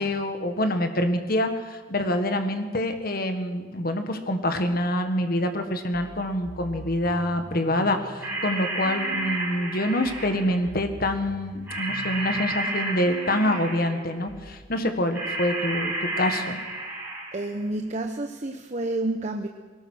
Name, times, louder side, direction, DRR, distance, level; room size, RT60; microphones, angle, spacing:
voice 1, 0.0-16.6, left 1 dB, 50° left, 6 dB, 1.7 m, -26 dB
sound 1, 5.9-14.5, right 1 dB, 75° right, 4.6 m, -43 dB
sound 2, 8.2-10.6 11.7-14.1 15.1-17.6, right 2 dB, 10° right, 6.4 m, -31 dB
voice 2, 17.3-19.5, right 2 dB, 35° right, 5 dB, 0.9 m, -29 dB
22.0 x 18.5 x 6.4 m, 1.4 s
head